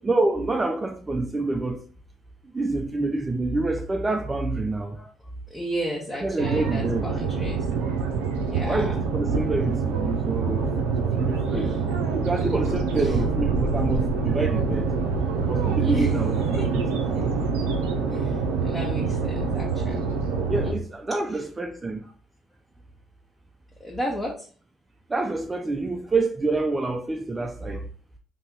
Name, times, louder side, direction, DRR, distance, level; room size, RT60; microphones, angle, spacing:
voice 1, 0.0-1.9 2.5-5.0 6.2-7.1 8.7-10.7 11.0-11.7 12.1-14.9 15.4-16.9 20.5-22.0 25.1-27.8, right 2 dB, 25° right, 0.4 m, -27 dB
voice 2, 5.5-7.6 8.4-9.0 11.4-11.8 12.9-13.1 15.8-16.1 16.5-16.7 17.1-17.2 18.1-20.1 20.6-20.8 23.8-24.5, equal, 15° left, 1.0 m, -32 dB
sound 1, 6.4-20.7, right 5 dB, 85° right, 0.5 m, -25 dB
2.8 x 2.7 x 3.6 m
hypercardioid pair, 55°, 0 cm